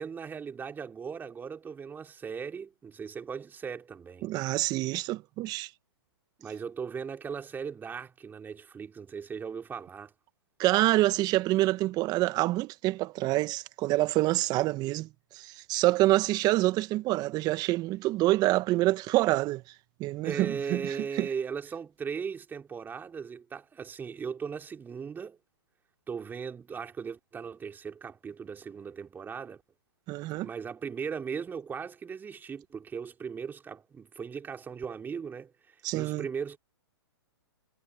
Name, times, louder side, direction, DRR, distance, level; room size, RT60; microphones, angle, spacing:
voice 1, 0.0-4.3 6.4-10.1 20.2-25.4 26.1-29.6 30.4-36.6, right 6 dB, 15° right, 3.7 m, -38 dB
voice 2, 4.2-5.7 10.6-15.1 15.3-19.6 20.0-20.9 21.2-21.3 30.1-30.5 35.8-36.2, right 17 dB, 30° right, 1.4 m, -26 dB
hypercardioid pair, 125°, 14 cm